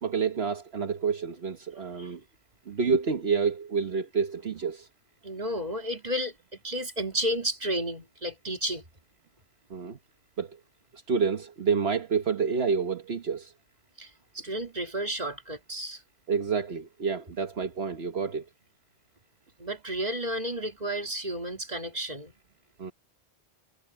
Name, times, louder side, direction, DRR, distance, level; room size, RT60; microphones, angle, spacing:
voice 1, 0.0-2.2 2.7-4.9 9.7-10.0 10.4-10.6 10.9-13.5 16.3-18.4 22.8-22.9, right 5 dB, 65° right, 1.5 m, -28 dB
voice 2, 1.7-2.1 5.2-8.8 14.0-16.0 19.6-22.3, equal, 40° right, 2.9 m, -32 dB
omnidirectional pair, 1.1 m